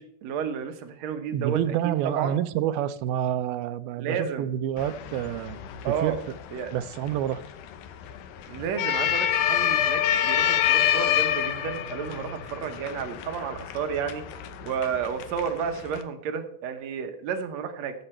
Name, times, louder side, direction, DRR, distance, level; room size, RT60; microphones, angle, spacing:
voice 1, 0.0-1.6 2.0-2.4 4.0-4.5 5.8-6.2 6.5-6.7 8.5-14.2 14.7-17.9, right 7 dB, 70° right, 1.7 m, -31 dB
voice 2, 1.3-5.6 5.9-6.2 6.7-7.4, right 11 dB, 85° right, 2.5 m, -28 dB
sound 1, 4.8-16.0, left 10 dB, 70° left, 2.1 m, -28 dB
15.5 x 7.8 x 4.4 m
omnidirectional pair, 4.3 m